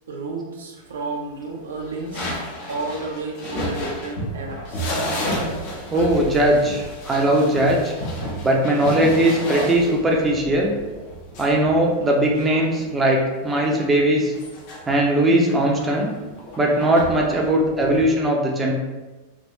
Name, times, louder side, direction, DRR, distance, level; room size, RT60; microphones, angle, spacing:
voice 1, 0.1-2.3 2.7-4.9 10.6-10.9 11.3-11.4 13.6-13.7, right 3 dB, 65° right, -1 dB, 0.5 m, -32 dB
sound 1, 1.7-12.9 13.5-14.8 15.3-18.0, equal, 45° left, 0.8 m, -31 dB
voice 2, 5.9-7.9 8.4-10.7 11.4-14.3 14.9-16.1 16.6-18.7, right 1 dB, 15° right, -1 dB, 0.6 m, -19 dB
3.3 x 2.6 x 2.7 m, 1.2 s
figure-of-eight pair, 90°, 0 cm